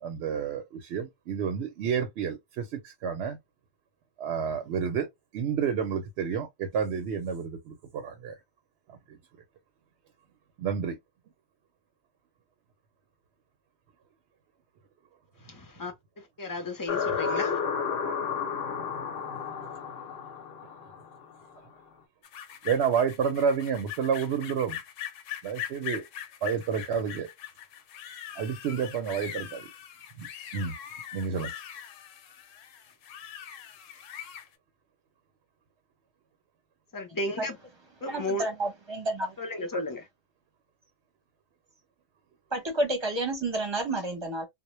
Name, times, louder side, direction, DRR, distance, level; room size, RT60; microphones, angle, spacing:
voice 1, 0.0-3.4 4.2-5.1 5.3-8.4 8.9-9.2 10.6-11.0 22.6-24.8 25.4-26.1 26.4-27.3 28.4-29.7 30.1-30.3 30.5-30.7 31.1-31.5, right 7 dB, 65° right, 0.8 m, -30 dB
voice 2, 15.4-17.6 36.9-37.6 38.0-38.4 39.4-40.1, left 2 dB, 25° left, 0.4 m, -34 dB
sound 1, 16.9-21.5, left 6 dB, 60° left, 0.7 m, -32 dB
sound 2, 22.2-34.5, left 10 dB, 80° left, 0.9 m, -41 dB
voice 3, 38.1-39.3 42.5-44.5, right 2 dB, 25° right, 0.7 m, -30 dB
2.1 x 2.1 x 2.9 m
omnidirectional pair, 1.3 m